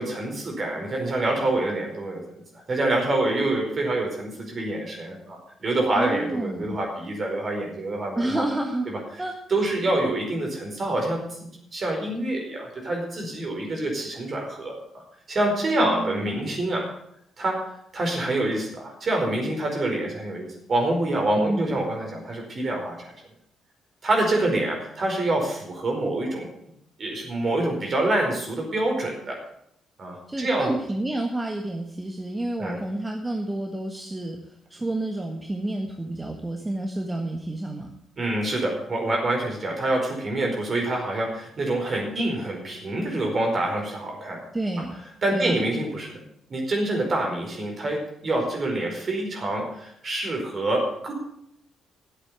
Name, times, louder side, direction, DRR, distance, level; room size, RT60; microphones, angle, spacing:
voice 1, 0.0-2.2 2.7-8.4 8.9-9.0 9.5-15.0 15.3-16.9 17.4-17.6 17.9-23.1 24.0-26.5 27.0-29.4 30.0-30.7 32.6-32.8 38.2-44.4 45.2-46.2 46.5-51.1, right 1 dB, 40° right, 1 dB, 4.8 m, -26 dB
voice 2, 5.9-6.8 8.1-8.9 9.2-9.6 15.8-16.5 21.4-21.7 30.3-34.4 34.7-37.9 44.5-44.9 45.3-45.6, right 1 dB, 15° right, 2 dB, 1.6 m, -29 dB
11.5 x 8.1 x 8.2 m, 0.74 s
figure-of-eight pair, 40°, 0 cm